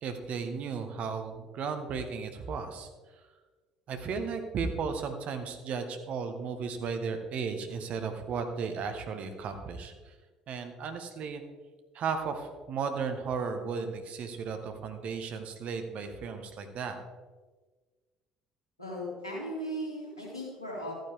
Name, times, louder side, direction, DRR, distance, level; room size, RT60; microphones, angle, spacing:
voice 1, 0.0-2.9 3.9-10.1 10.5-11.4 11.9-17.0, right 5 dB, 50° right, 6 dB, 1.3 m, -35 dB
voice 2, 18.8-20.9, equal, 90° left, -3 dB, 2.6 m, -37 dB
13.5 x 9.3 x 3.6 m, 1.4 s
figure-of-eight pair, 55°, 3 cm